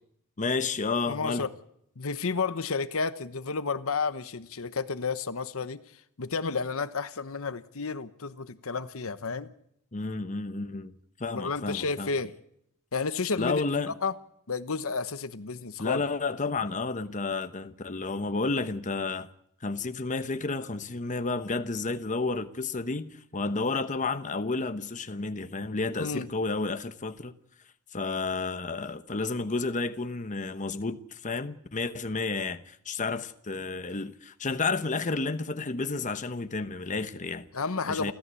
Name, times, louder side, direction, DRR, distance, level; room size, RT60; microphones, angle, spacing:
voice 1, 0.4-1.5 9.9-10.9 11.2-12.1 13.4-13.9 15.8-19.3 19.6-27.3 27.9-37.5 37.9-38.1, left 3 dB, 35° left, 1.0 m, -31 dB
voice 2, 1.1-1.5 2.0-9.5 11.3-12.3 12.9-13.6 14.0-14.1 14.5-16.0 26.0-26.3 37.5-38.1, left 4 dB, 65° left, 1.0 m, -31 dB
29.0 x 14.5 x 8.3 m
head